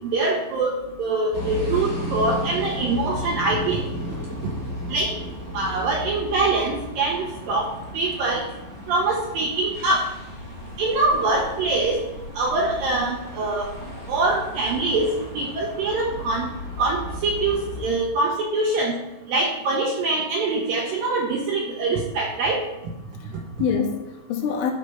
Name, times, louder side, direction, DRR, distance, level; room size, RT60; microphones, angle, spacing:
voice 1, 0.1-3.8 4.9-5.1 5.5-7.7 7.9-8.4 8.9-10.0 10.8-12.0 12.4-13.7 14.1-15.1 15.3-16.5 16.8-17.0 17.2-18.9 19.3-22.6, right 3 dB, 75° right, -1 dB, 2.1 m, -23 dB
sound 1, 1.3-17.9, left 1 dB, 20° left, 2.0 m, -34 dB
voice 2, 4.1-4.5 23.2-24.7, left 6 dB, 85° left, 1 dB, 3.8 m, -27 dB
13.5 x 5.2 x 5.7 m, 0.97 s
omnidirectional pair, 5.5 m